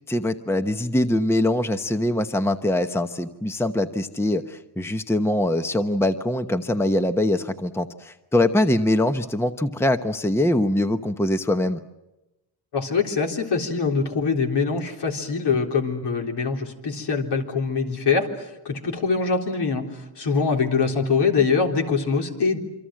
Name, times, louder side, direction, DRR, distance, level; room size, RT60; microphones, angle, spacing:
voice 1, 0.1-11.8, left 1 dB, 5° left, 8 dB, 1.0 m, -23 dB
voice 2, 12.7-22.6, left 5 dB, 65° left, 2 dB, 3.8 m, -23 dB
27.5 x 25.0 x 7.6 m, 0.96 s
cardioid pair, 110°, 44 cm